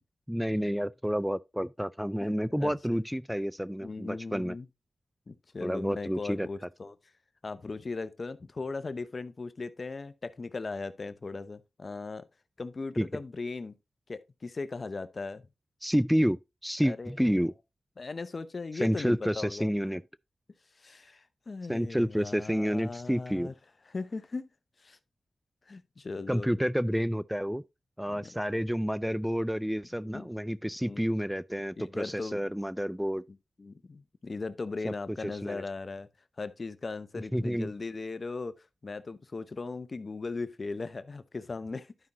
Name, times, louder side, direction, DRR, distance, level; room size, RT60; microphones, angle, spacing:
voice 1, 0.3-4.6 5.6-6.5 13.0-13.1 15.8-17.5 18.7-20.0 21.7-23.5 26.3-27.6 28.0-33.2 34.8-34.9 35.4-35.6 37.3-37.7, equal, 5° right, 0.3 m, -29 dB
voice 2, 2.2-3.0 3.8-4.7 5.3-7.0 7.4-12.2 12.6-13.8 14.1-15.4 16.8-17.1 18.0-19.7 20.8-23.5 23.9-24.5 24.8-25.0 25.7-26.7 28.1-28.3 30.0-30.3 30.8-31.0 31.8-32.4 33.6-36.1 36.4-41.9, left 3 dB, 55° left, 0.7 m, -38 dB
11.0 x 5.4 x 3.0 m
cardioid pair, 40°, 0 cm